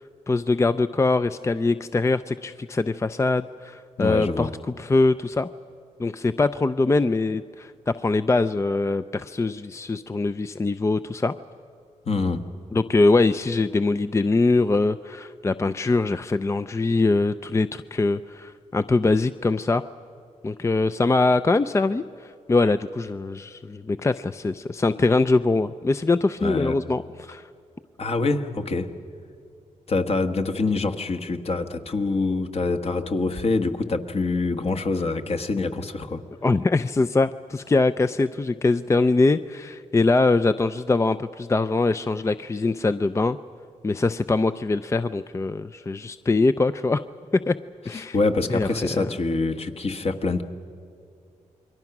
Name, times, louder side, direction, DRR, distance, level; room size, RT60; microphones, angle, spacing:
voice 1, 0.3-4.5 4.8-5.5 6.0-11.3 12.7-19.9 20.4-27.5 36.4-43.4 43.8-47.0 47.3-47.5 47.9-48.2 48.5-49.1, left 3 dB, 20° left, 12 dB, 0.5 m, -23 dB
voice 2, 4.0-4.5 12.0-12.4 26.4-26.7 28.0-28.9 29.9-36.2 48.1-50.4, left 3 dB, 50° left, 6 dB, 1.5 m, -25 dB
28.5 x 22.5 x 6.0 m, 2.5 s
cardioid pair, 80°, 13 cm